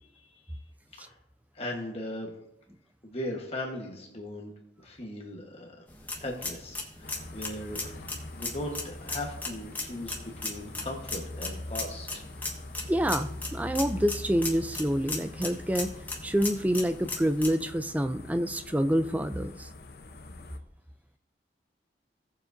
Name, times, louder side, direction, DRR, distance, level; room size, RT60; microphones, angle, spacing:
voice 1, 0.1-0.6 0.9-1.2 1.5-2.3 3.0-4.5 4.8-5.8 6.1-7.9 8.3-12.2, left 1 dB, 35° left, 0 dB, 1.2 m, -38 dB
sound 1, 5.9-17.5, left 3 dB, 10° left, 1.2 m, -38 dB
sound 2, 7.0-20.6, left 2 dB, 60° left, 0.8 m, -43 dB
voice 2, 12.9-15.9 16.2-19.7, equal, 10° right, 10 dB, 0.4 m, -27 dB
17.5 x 7.2 x 2.6 m, 0.80 s
head